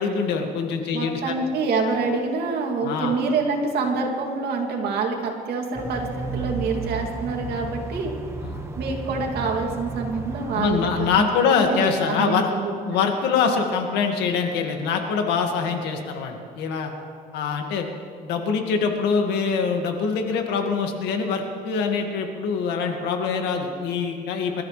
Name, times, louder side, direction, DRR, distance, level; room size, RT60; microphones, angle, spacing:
voice 1, 0.0-1.3 2.8-3.2 8.4-8.6 10.5-12.5 12.8-16.9 17.3-17.9 18.2-24.6, left 5 dB, 90° left, 4 dB, 1.9 m, -24 dB
voice 2, 0.9-8.1 8.8-13.0, right 4 dB, 70° right, 1 dB, 2.7 m, -26 dB
sound 1, 5.7-11.2, right 3 dB, 15° right, 1.5 m, -33 dB
26.0 x 13.5 x 3.3 m, 2.2 s
cardioid pair, 110°, 17 cm